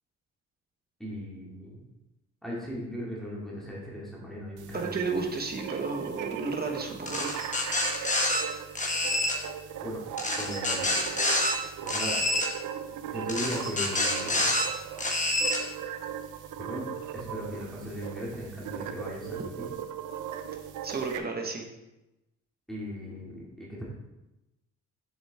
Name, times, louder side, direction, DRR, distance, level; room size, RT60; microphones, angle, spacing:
voice 1, 1.0-1.8 2.4-5.3 9.8-10.0 10.4-11.3 11.8-12.2 13.1-14.5 16.6-16.9 17.1-19.7 22.7-23.9, equal, ahead, -6 dB, 2.3 m, -38 dB
sound 1, 4.6-21.2, right 9 dB, 85° right, 0.7 m, -38 dB
voice 2, 4.7-7.6 20.8-21.7, right 3 dB, 30° right, 4 dB, 1.3 m, -33 dB
sound 2, 7.1-8.4 8.8-9.4 10.2-11.5 11.9-12.5 13.3-14.6 15.0-15.6, left 1 dB, 25° left, 1.4 m, -27 dB
7.2 x 7.1 x 3.5 m, 0.97 s
cardioid pair, 90°, 30 cm